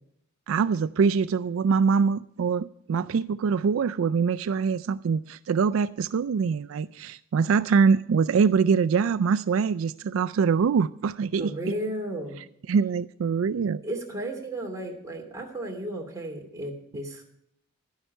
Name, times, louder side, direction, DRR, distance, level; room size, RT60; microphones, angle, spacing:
voice 1, 0.5-11.5 12.7-13.8, right 5 dB, 70° right, 14 dB, 0.3 m, -24 dB
voice 2, 11.4-12.4 13.8-17.3, right 1 dB, 15° right, 1 dB, 2.6 m, -34 dB
11.0 x 10.5 x 5.5 m, 0.71 s
head